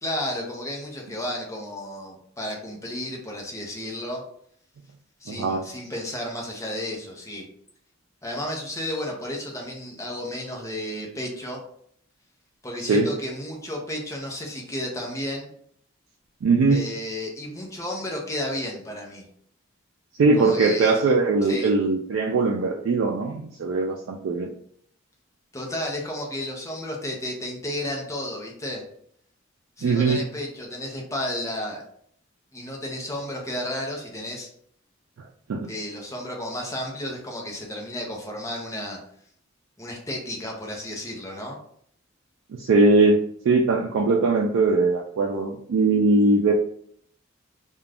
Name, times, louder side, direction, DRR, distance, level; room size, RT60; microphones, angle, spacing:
voice 1, 0.0-4.2 5.2-7.4 8.2-11.6 12.6-15.5 16.7-19.2 20.3-20.9 21.4-21.7 25.5-28.8 29.8-31.8 32.5-34.5 35.7-39.0 39.8-41.6, left 1 dB, 15° left, -1 dB, 0.6 m, -32 dB
voice 2, 5.3-5.6 12.9-13.1 16.4-16.8 20.2-24.5 29.8-30.2 35.5-35.7 42.6-43.2 43.4-46.5, right 3 dB, 85° right, 1 dB, 0.3 m, -20 dB
2.4 x 2.2 x 3.3 m, 0.64 s
head